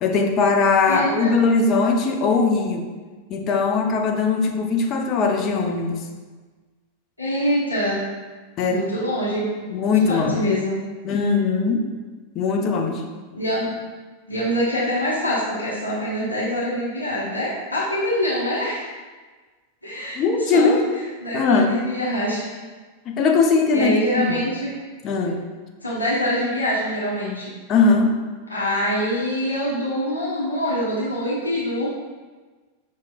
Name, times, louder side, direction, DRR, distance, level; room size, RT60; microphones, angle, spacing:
voice 1, 0.0-2.8 3.3-6.0 8.6-8.8 9.7-10.4 11.0-11.8 12.4-13.0 20.2-20.9 21.3-21.8 23.1-23.9 24.3-24.4 25.0-25.4 27.7-28.1, left 4 dB, 35° left, 3 dB, 0.5 m, -20 dB
voice 2, 0.9-1.3 7.2-8.0 8.7-9.5 10.1-10.8 13.3-13.7 14.3-18.8 19.8-20.7 21.2-22.6 23.7-24.7 25.8-27.5 28.5-31.9, equal, 85° left, -7 dB, 0.9 m, -24 dB
5.7 x 2.9 x 2.3 m, 1.4 s
figure-of-eight pair, 90°, 0 cm